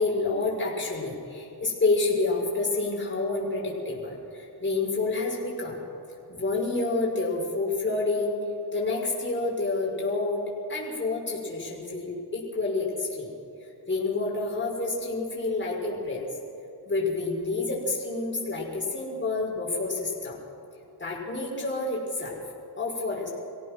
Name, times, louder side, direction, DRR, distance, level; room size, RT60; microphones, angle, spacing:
voice 1, 0.0-5.8 6.3-8.4 8.7-10.4 10.7-13.3 13.9-16.3 16.9-20.4 21.0-22.4 22.8-23.3, left 3 dB, 30° left, -3 dB, 5.8 m, -28 dB
24.0 x 17.0 x 6.3 m, 2.6 s
cardioid pair, 90°, 41 cm